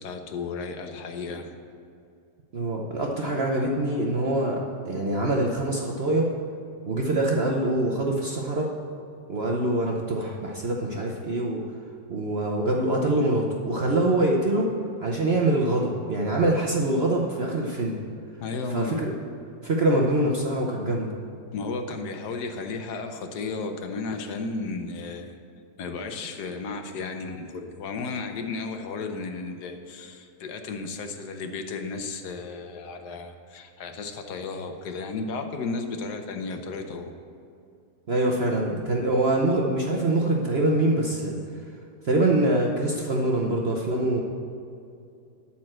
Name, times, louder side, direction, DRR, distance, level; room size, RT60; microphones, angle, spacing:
voice 1, 0.0-1.6 18.4-19.0 21.5-25.4 25.8-37.1, left 4 dB, 70° left, 6 dB, 1.3 m, -34 dB
voice 2, 2.5-6.3 6.9-8.7 9.3-11.6 12.1-14.7 15.0-18.0 18.7-19.1 19.6-21.1 38.1-41.3 42.0-44.2, right 1 dB, 50° right, -1 dB, 0.8 m, -24 dB
12.0 x 4.4 x 7.5 m, 2.5 s
omnidirectional pair, 1.9 m